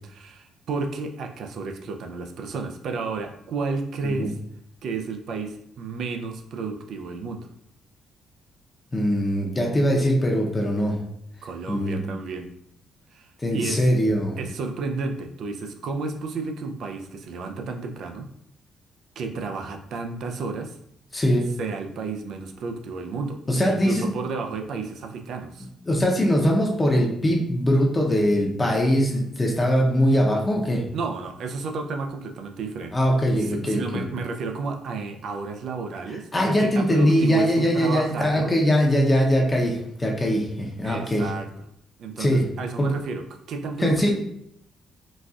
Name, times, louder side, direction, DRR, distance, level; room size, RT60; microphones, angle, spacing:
voice 1, 0.1-4.4 4.8-7.5 11.4-12.5 13.1-13.8 14.4-18.3 19.2-20.8 21.6-25.7 30.9-32.9 33.4-38.5 40.8-41.5 42.0-44.1, right 4 dB, 70° right, 5 dB, 0.4 m, -32 dB
voice 2, 8.9-10.9 11.7-12.0 13.4-14.4 21.1-21.5 23.5-24.1 25.9-30.8 32.9-34.0 36.3-41.3 42.2-42.5 42.8-42.9 43.8-44.1, equal, 20° left, -1 dB, 0.7 m, -21 dB
4.0 x 2.3 x 2.4 m, 0.73 s
cardioid pair, 90°, 0 cm